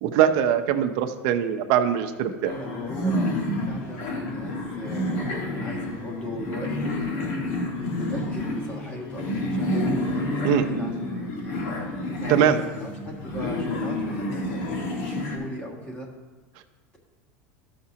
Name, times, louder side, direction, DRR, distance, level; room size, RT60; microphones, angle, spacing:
voice 1, 0.0-2.5 10.4-10.6 12.3-12.6, right 9 dB, 55° right, 6 dB, 0.7 m, -22 dB
sound 1, 2.4-15.4, left 1 dB, 65° left, 1.6 m, -29 dB
voice 2, 2.6-6.8 7.4-9.9 10.3-11.4 12.2-16.1, left 1 dB, 15° left, -1 dB, 1.4 m, -39 dB
13.5 x 5.8 x 2.9 m, 1.3 s
supercardioid pair, 145°, 8 cm